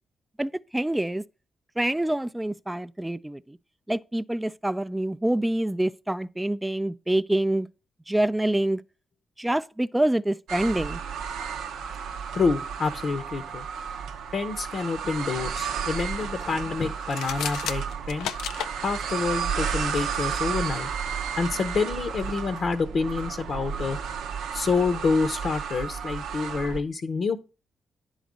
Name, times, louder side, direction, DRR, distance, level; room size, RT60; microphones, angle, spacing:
voice 1, 0.4-1.2 1.8-3.6 3.9-7.7 8.1-8.8 9.4-11.0, right 1 dB, 10° right, 0.4 m, -26 dB
sound 1, 10.5-26.8, right 7 dB, 80° right, 0.6 m, -32 dB
voice 2, 12.3-13.6 14.3-18.3 18.8-20.9 21.4-24.0 24.5-27.4, left 4 dB, 60° left, 0.8 m, -27 dB
sound 2, 17.0-18.7, left 9 dB, 85° left, 0.4 m, -32 dB
10.0 x 4.0 x 6.2 m
hypercardioid pair, 45°, 0 cm